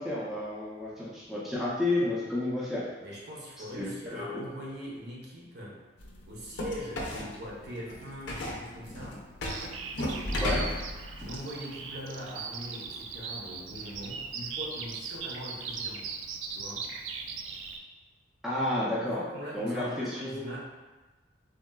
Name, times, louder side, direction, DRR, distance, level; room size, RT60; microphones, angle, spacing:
voice 1, 0.0-2.9 3.7-4.4 10.4-10.7 18.4-19.2 19.5-20.5, left 1 dB, ahead, -8 dB, 0.4 m, -31 dB
voice 2, 3.0-5.8 6.3-9.2 11.2-16.1 16.5-16.9 18.9-20.6, equal, 60° right, -4 dB, 0.7 m, -41 dB
sound 1, 6.0-11.4, left 1 dB, 70° left, 0.5 m, -36 dB
Bird vocalization bird call bird song, 9.5-17.8, right 5 dB, 85° right, 0.3 m, -39 dB
3.6 x 2.3 x 2.2 m, 1.2 s
head